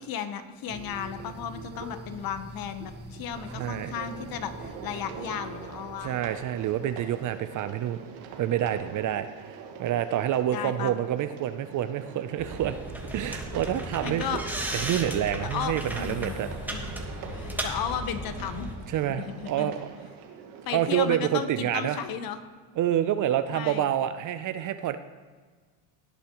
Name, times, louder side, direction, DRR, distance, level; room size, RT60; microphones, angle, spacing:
voice 1, 0.0-6.2 10.5-10.9 14.0-14.4 15.4-16.3 16.7-17.0 17.3-18.7 19.1-19.8 20.7-22.4 23.5-23.9, left 8 dB, 45° left, 10 dB, 1.0 m, -34 dB
sound 1, 0.7-8.3, right 2 dB, 20° right, 1.5 m, -45 dB
sound 2, 3.3-22.0, right 6 dB, 75° right, 1.8 m, -44 dB
voice 2, 3.5-3.9 6.0-8.0 8.4-12.7 13.1-14.3 14.7-16.5 18.9-19.8 20.7-22.0 22.8-25.0, right 11 dB, 40° right, 11 dB, 0.5 m, -28 dB
sound 3, 12.4-18.8, right 1 dB, 5° right, 1.4 m, -35 dB
18.0 x 8.3 x 3.0 m, 1.5 s
supercardioid pair, 110°, 49 cm